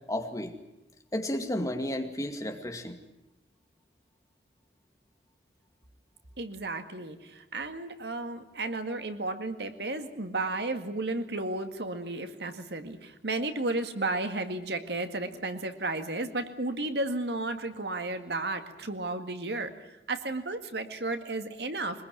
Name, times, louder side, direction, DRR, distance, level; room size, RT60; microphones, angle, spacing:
voice 1, 0.1-0.5 1.1-3.0, left 1 dB, 20° left, 5 dB, 2.2 m, -32 dB
voice 2, 6.4-19.7 20.1-22.0, right 2 dB, 70° right, 8 dB, 2.0 m, -33 dB
23.0 x 21.0 x 9.2 m, 0.91 s
head